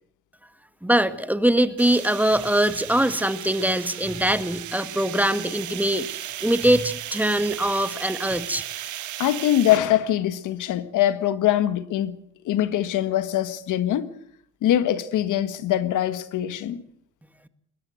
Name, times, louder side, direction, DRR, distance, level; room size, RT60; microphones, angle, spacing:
voice 1, 0.8-8.6, right 1 dB, 5° right, 1.7 m, -22 dB
sound 1, 1.8-9.8, right 13 dB, 75° right, 1.4 m, -36 dB
voice 2, 9.2-12.2 12.4-14.1 14.6-16.8, left 12 dB, 85° left, 1.6 m, -23 dB
21.5 x 19.5 x 7.9 m
cardioid pair, 90°, 30 cm